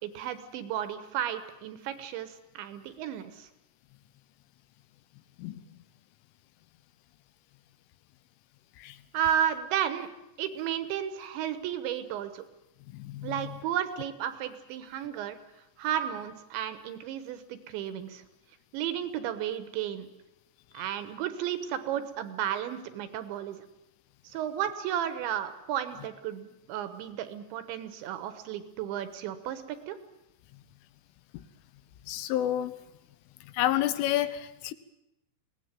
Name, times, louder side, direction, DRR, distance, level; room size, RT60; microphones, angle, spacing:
voice 1, 0.0-3.5 9.1-10.1 10.4-12.5 13.2-15.4 15.8-18.2 18.7-20.1 20.7-23.7 24.2-30.0, right 10 dB, 75° right, 10 dB, 3.3 m, -33 dB
voice 2, 12.9-13.4 32.1-32.7 33.5-34.7, left 13 dB, 80° left, 13 dB, 3.5 m, -29 dB
23.0 x 18.0 x 9.1 m, 0.89 s
omnidirectional pair, 5.6 m